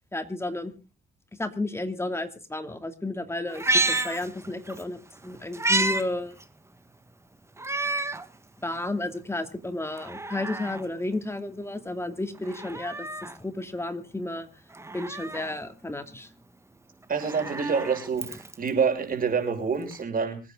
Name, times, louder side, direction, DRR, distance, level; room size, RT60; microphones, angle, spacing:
voice 1, 0.1-0.7 1.4-3.7 4.0-6.3 8.6-14.5 14.9-16.3, left 2 dB, 15° left, 8 dB, 2.6 m, -32 dB
Meow, 3.5-4.8 5.2-6.0 6.4-6.5 7.6-8.3 8.8-8.9 9.8-10.8 12.4-13.4 14.7-15.6 17.0-18.7 19.9-20.0, right 2 dB, 15° right, 1.4 m, -30 dB
voice 2, 17.1-20.4, right 5 dB, 45° right, 4 dB, 6.0 m, -27 dB
25.5 x 9.5 x 3.8 m, 0.33 s
cardioid pair, 90°, 20 cm